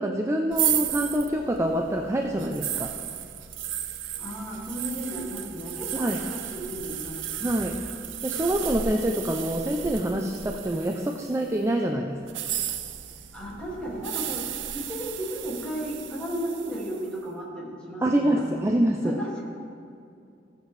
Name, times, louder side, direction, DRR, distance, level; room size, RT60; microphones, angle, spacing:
voice 1, 0.0-3.0 5.9-6.2 7.4-7.8 8.2-12.2 18.0-19.1, right 1 dB, 15° right, 2 dB, 0.4 m, -26 dB
sound 1, 0.5-11.5 12.2-17.1, right 10 dB, 85° right, 0.6 m, -34 dB
voice 2, 4.2-7.4 7.8-7.9 13.3-14.5 14.9-18.5 19.0-19.4, equal, 5° left, -6 dB, 2.2 m, -34 dB
16.0 x 7.6 x 3.3 m, 2.5 s
head